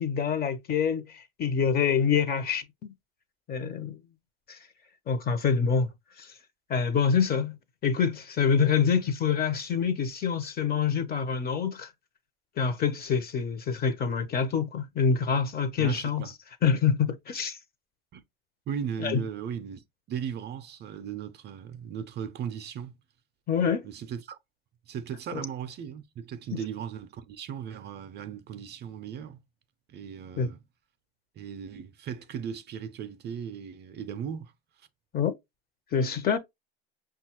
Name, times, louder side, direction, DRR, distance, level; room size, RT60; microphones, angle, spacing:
voice 1, 0.0-2.6 3.5-4.0 4.5-4.6 5.1-5.9 6.2-6.3 6.7-7.6 7.8-11.9 12.6-16.2 16.6-17.6 19.0-19.2 23.5-23.9 30.4-30.5 35.1-35.3 35.9-36.4, left 6 dB, 30° left, 0.7 m, -26 dB
voice 2, 15.8-16.3 18.1-18.2 18.7-22.9 23.8-24.4 24.9-29.4 29.9-30.6 31.4-34.5 34.8-34.9, right 8 dB, 35° right, 0.5 m, -37 dB
5.5 x 2.3 x 2.9 m
hypercardioid pair, 90°, 31 cm